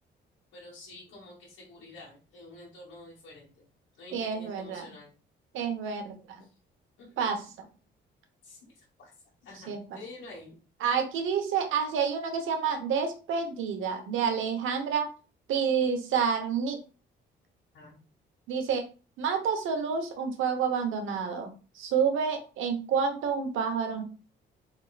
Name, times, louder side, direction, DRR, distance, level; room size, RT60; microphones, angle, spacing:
voice 1, 0.5-3.6 4.0-5.1 7.0-7.2 8.4-8.6 9.0-9.1 9.4-10.6 17.7-17.9, left 2 dB, 70° left, -5 dB, 1.4 m, -48 dB
voice 2, 4.1-4.8 5.5-6.4 7.2-7.5 9.5-9.8 10.8-15.1 15.5-16.8 18.5-18.8 19.2-24.0, right 6 dB, 80° right, 6 dB, 1.0 m, -29 dB
4.3 x 3.5 x 2.4 m, 0.34 s
cardioid pair, 90°, 20 cm